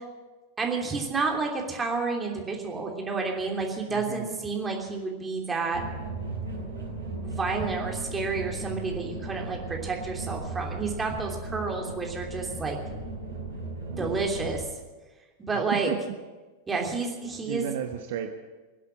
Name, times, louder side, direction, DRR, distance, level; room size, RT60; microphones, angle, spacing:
voice 1, 0.6-5.8 7.2-12.8 14.0-14.6 15.4-15.9 16.7-17.7, right 4 dB, 15° right, 0 dB, 3.1 m, -30 dB
voice 2, 3.9-4.4 13.9-14.2 15.5-16.2 17.4-18.3, right 10 dB, 55° right, 5 dB, 1.0 m, -34 dB
sound 1, 5.7-14.6, right 2 dB, 75° right, 5.6 m, -36 dB
22.5 x 8.2 x 7.4 m, 1.3 s
figure-of-eight pair, 90°, 0 cm